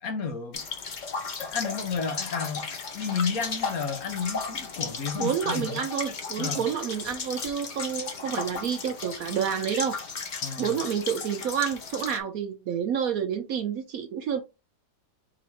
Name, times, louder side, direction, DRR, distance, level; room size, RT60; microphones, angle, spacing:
voice 1, 0.0-0.6 1.4-2.7 2.9-5.8 6.4-6.6 10.4-10.8, left 5 dB, 65° left, 1.1 m, -32 dB
sound 1, 0.5-12.2, left 5 dB, 90° left, 0.4 m, -35 dB
voice 2, 5.2-10.0 10.6-14.4, right 8 dB, 65° right, 0.9 m, -29 dB
3.9 x 2.9 x 4.3 m
omnidirectional pair, 1.9 m